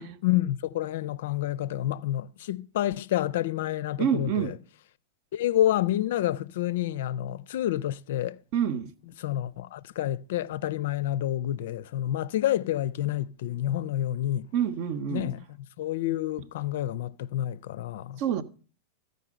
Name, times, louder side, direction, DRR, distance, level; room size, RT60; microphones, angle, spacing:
voice 1, 0.0-4.6 5.3-8.4 9.2-14.5 15.1-15.4 15.8-18.2, left 13 dB, 55° left, 0.5 m, -29 dB
voice 2, 4.0-4.5 8.5-8.9 14.5-15.3 18.2-18.4, right 8 dB, 45° right, 0.8 m, -27 dB
14.0 x 5.3 x 7.6 m
figure-of-eight pair, 90°, 0 cm